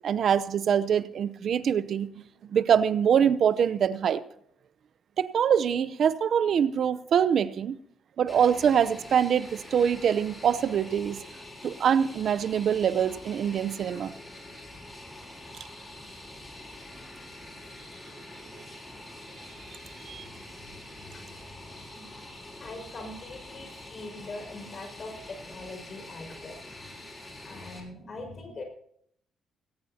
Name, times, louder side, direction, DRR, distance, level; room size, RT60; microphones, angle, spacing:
voice 1, 0.0-2.1 2.5-4.2 5.2-7.8 8.2-11.2 11.6-14.1 20.0-20.2, right 8 dB, 60° right, 14 dB, 0.8 m, -24 dB
Fixed-wing aircraft airplane, 8.3-27.8, left 1 dB, 20° left, 5.4 m, -45 dB
voice 2, 20.2-28.6, left 2 dB, 45° left, 4 dB, 5.8 m, -43 dB
19.0 x 17.5 x 2.9 m, 0.69 s
cardioid pair, 90°, 0 cm